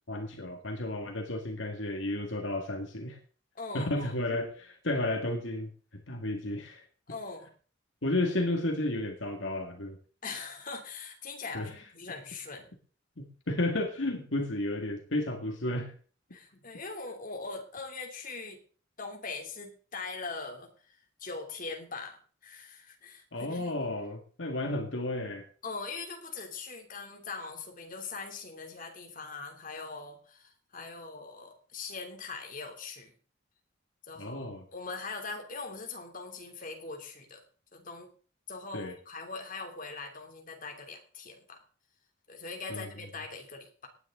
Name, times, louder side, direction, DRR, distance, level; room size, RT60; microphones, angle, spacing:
voice 1, 0.1-3.2 3.7-5.7 6.1-6.8 8.0-10.0 11.5-11.7 13.2-15.9 23.3-25.5 34.2-34.6 38.7-38.9 42.7-42.9, left 1 dB, 80° left, 4 dB, 2.1 m, -32 dB
voice 2, 3.5-4.2 7.1-7.5 10.2-12.7 16.3-18.6 19.0-23.8 25.6-33.1 34.1-34.5 34.7-37.4 37.7-38.1 38.5-41.6 42.3-43.9, left 4 dB, 45° left, 3 dB, 3.1 m, -41 dB
17.5 x 9.8 x 3.9 m, 0.40 s
head